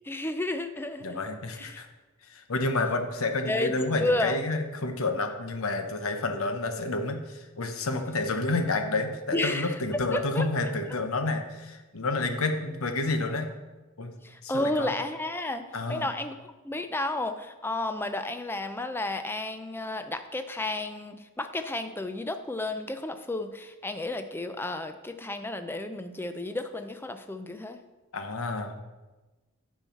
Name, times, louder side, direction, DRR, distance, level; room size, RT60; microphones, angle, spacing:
voice 1, 0.0-1.2 1.5-1.8 3.4-3.7 4.0-4.4 9.3-10.5 10.9-11.0 14.2-16.4 16.6-27.8, left 2 dB, 10° left, 8 dB, 0.4 m, -32 dB
voice 2, 1.0-1.9 2.3-13.5 14.0-14.1 14.4-14.9 15.7-16.1 28.1-28.8, left 2 dB, 75° left, 6 dB, 0.9 m, -29 dB
8.9 x 4.6 x 5.7 m, 1.2 s
head